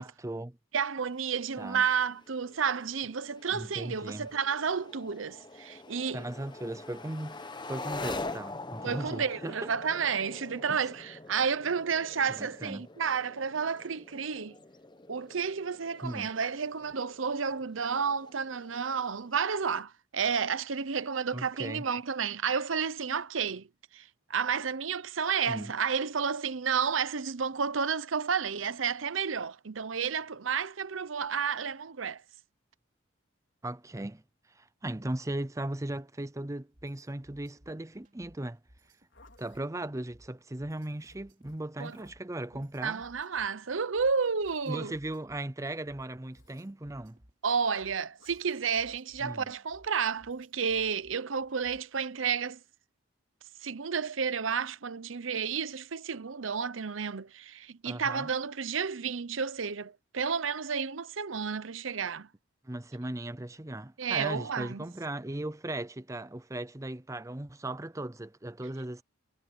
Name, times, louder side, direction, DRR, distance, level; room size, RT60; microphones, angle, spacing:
voice 1, 0.0-0.6 1.6-1.9 3.5-4.3 6.1-9.7 10.7-10.8 12.4-12.8 16.0-16.3 21.3-21.9 25.5-25.7 33.6-34.2 34.5-38.6 39.4-43.0 44.7-47.2 49.2-49.5 57.8-58.3 62.6-69.0, right 1 dB, 15° right, 0.6 m, -37 dB
voice 2, 0.7-6.2 8.8-14.6 15.1-23.7 23.9-32.2 41.8-42.0 42.8-44.9 47.4-52.6 53.6-62.3 64.0-64.9, right 6 dB, 80° right, 0.8 m, -31 dB
sound 1, 1.0-19.8, left 3 dB, 25° left, 1.1 m, -45 dB
sound 2, 36.7-52.0, equal, 40° right, 3.2 m, -61 dB
Zipper (clothing), 38.8-39.6 40.9-42.3 43.8-44.8 46.3-46.7 48.2-48.4, left 3 dB, 70° left, 4.8 m, -62 dB
head